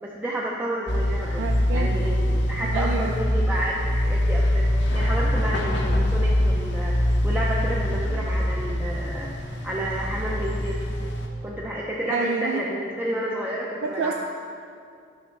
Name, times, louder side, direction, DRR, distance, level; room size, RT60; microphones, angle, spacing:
voice 1, 0.0-9.3 9.6-10.8 11.4-14.1, right 1 dB, 10° right, -4 dB, 0.4 m, -30 dB
sound 1, 0.9-11.3, left 1 dB, 70° left, 0.7 m, -24 dB
voice 2, 1.4-2.1 2.7-3.1 12.1-12.6 13.8-14.1, right 5 dB, 85° right, 3 dB, 0.4 m, -28 dB
9.3 x 5.9 x 3.2 m, 2.4 s
head